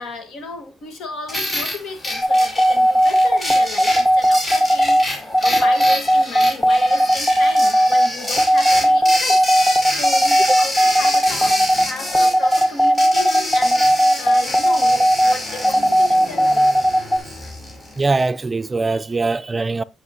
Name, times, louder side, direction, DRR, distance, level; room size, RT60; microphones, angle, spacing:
voice 1, 0.0-9.7 10.0-16.7, left 3 dB, 75° left, 1.5 m, -34 dB
sound 1, 1.3-18.3, left 1 dB, 35° left, 5.4 m, -27 dB
sound 2, 2.2-17.2, equal, 20° left, 1.1 m, -16 dB
voice 2, 18.0-19.8, right 3 dB, 25° right, 0.4 m, -21 dB
9.4 x 5.7 x 2.8 m
cardioid pair, 90°, 0 cm